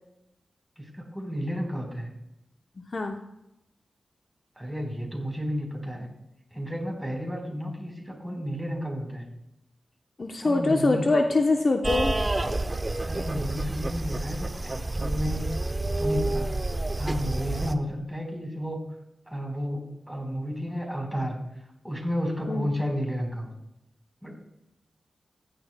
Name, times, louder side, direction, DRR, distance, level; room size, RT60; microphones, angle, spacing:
voice 1, 0.8-2.1 4.6-6.1 6.5-9.3 10.4-11.1 13.1-15.6 16.0-16.5 17.0-18.8 19.3-21.4 21.8-23.5 24.2-24.3, equal, 5° right, 0 dB, 4.1 m, -32 dB
voice 2, 10.2-12.2 22.5-22.7, left 2 dB, 50° left, 4 dB, 0.9 m, -23 dB
sound 1, 11.8-17.7, right 2 dB, 30° right, 0.8 m, -29 dB
15.5 x 10.5 x 2.2 m, 0.87 s
cardioid pair, 60°, 0 cm